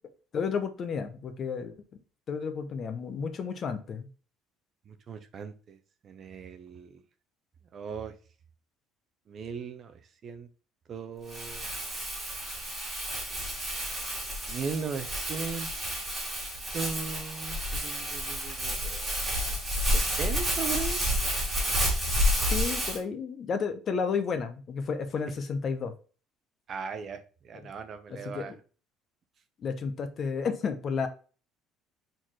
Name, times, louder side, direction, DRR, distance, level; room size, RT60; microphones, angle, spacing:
voice 1, 0.3-1.8 2.3-4.1 22.5-25.9 28.1-28.6 29.6-31.1, left 5 dB, 35° left, 9 dB, 0.7 m, -32 dB
voice 2, 4.9-5.8 6.0-7.0 7.7-8.1 9.3-9.9 10.2-10.5 10.9-11.7 14.5-15.7 16.7-19.2 19.8-21.0 26.7-28.5, right 5 dB, 35° right, 10 dB, 0.6 m, -38 dB
Crumpling crinkling, 11.3-23.0, equal, 10° right, 2.2 m, -30 dB
4.3 x 3.9 x 3.0 m, 0.37 s
cardioid pair, 160°, 0 cm